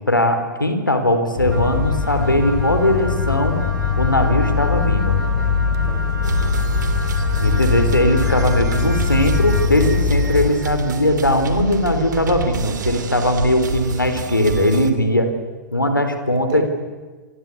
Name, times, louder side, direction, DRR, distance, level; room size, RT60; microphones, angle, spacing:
voice 1, 0.1-3.6 4.0-5.2 7.4-15.3 15.7-16.6, left 1 dB, 85° left, 8 dB, 3.9 m, -19 dB
sound 1, 1.4-10.5, left 5 dB, 55° left, 3.9 m, -21 dB
Wind instrument woodwind instrument, 1.5-9.8, right 1 dB, 80° right, 3.5 m, -33 dB
voice 2, 5.8-6.9 16.3-16.6, right 10 dB, 35° right, 8 dB, 5.0 m, -37 dB
sound 2, 6.2-14.9, right 6 dB, 65° right, 2.9 m, -28 dB
27.0 x 25.5 x 8.5 m, 1.4 s
figure-of-eight pair, 100°, 11 cm